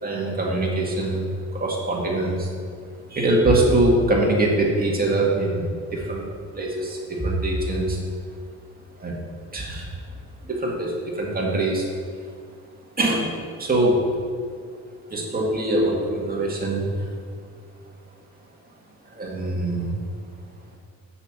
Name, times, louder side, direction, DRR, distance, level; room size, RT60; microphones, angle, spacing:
voice 1, 0.0-2.5 3.1-6.3 6.5-8.0 9.0-9.1 9.5-9.9 10.4-11.9 13.0-14.0 15.1-16.8 19.1-19.9, right 1 dB, 30° right, -2 dB, 2.1 m, -23 dB
6.5 x 5.7 x 6.5 m, 2.1 s
cardioid pair, 90°, 30 cm